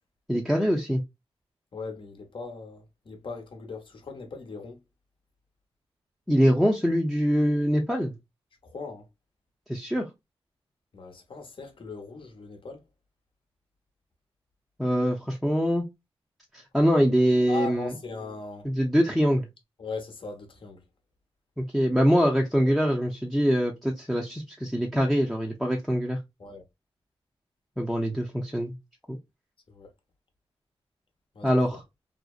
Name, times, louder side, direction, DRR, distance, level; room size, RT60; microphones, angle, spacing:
voice 1, 0.3-1.0 6.3-8.1 9.7-10.1 14.8-15.8 16.5-17.9 18.6-19.5 21.6-26.2 27.8-28.8 29.1-29.2 31.4-31.8, equal, ahead, 0.5 m, -24 dB
voice 2, 1.7-4.8 8.6-9.1 10.9-12.8 17.5-18.7 19.8-20.9 26.4-26.6 29.7-29.9 31.3-31.8, left 4 dB, 55° left, 0.8 m, -39 dB
2.6 x 2.0 x 2.3 m
cardioid pair, 55°, 10 cm